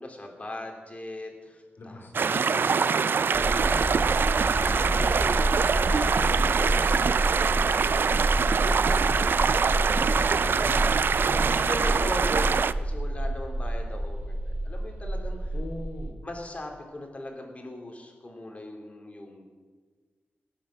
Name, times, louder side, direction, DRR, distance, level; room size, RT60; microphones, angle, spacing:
voice 1, 0.0-2.4 3.2-10.8 11.4-15.5 16.2-19.4, left 1 dB, 35° left, 2 dB, 2.7 m, -40 dB
voice 2, 1.8-3.0 9.7-10.8 11.2-11.6 15.5-16.1, left 2 dB, 65° left, 1 dB, 2.9 m, -40 dB
sound 1, 2.1-12.7, right 5 dB, 60° right, 0.4 m, -24 dB
sound 2, 3.3-16.1, right 1 dB, 45° right, 2.5 m, -29 dB
17.5 x 7.3 x 6.2 m, 1.5 s
wide cardioid pair, 80°, 4 cm